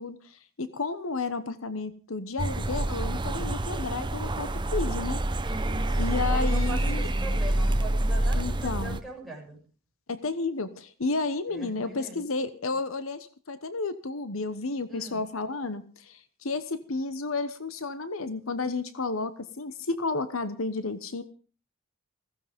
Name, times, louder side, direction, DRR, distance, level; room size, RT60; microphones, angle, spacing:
voice 1, 0.0-5.2 6.0-7.1 8.3-9.0 10.1-21.2, left 3 dB, 70° left, 13 dB, 1.1 m, -32 dB
sound 1, 2.4-9.0, right 1 dB, 20° right, 0.8 m, -27 dB
voice 2, 5.4-9.6 11.5-12.2 14.9-15.2, right 1 dB, ahead, 1 dB, 7.6 m, -41 dB
16.0 x 15.0 x 5.2 m, 0.39 s
head